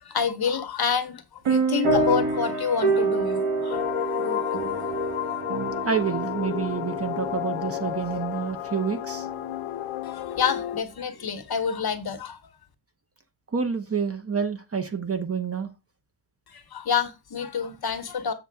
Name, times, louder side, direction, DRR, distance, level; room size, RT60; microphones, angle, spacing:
voice 1, 0.0-3.8 4.2-4.6 10.0-12.4 16.5-18.3, left 6 dB, 50° left, 1.1 m, -28 dB
sound 1, 1.5-9.6, right 3 dB, 80° right, 1.5 m, -28 dB
sound 2, 3.7-10.8, left 13 dB, 90° left, 0.6 m, -32 dB
voice 2, 5.8-9.3 13.5-15.7, right 6 dB, 30° right, 0.7 m, -28 dB
7.7 x 5.9 x 3.4 m
wide cardioid pair, 170°, 49 cm